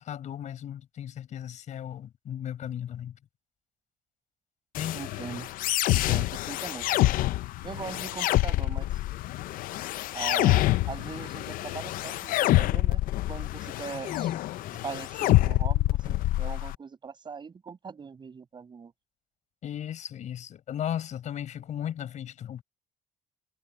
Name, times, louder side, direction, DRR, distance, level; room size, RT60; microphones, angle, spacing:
voice 1, 0.0-3.1 4.8-5.0 14.1-14.8 19.6-22.6, left 10 dB, 60° left, 4.8 m, -36 dB
sound 1, 4.7-16.7, left 17 dB, 80° left, 0.5 m, -27 dB
voice 2, 4.9-5.5 5.9-6.9 7.6-8.9 10.1-13.0 13.3-14.3 14.8-18.9, right 6 dB, 30° right, 8.0 m, -40 dB
cardioid pair, 130°, 14 cm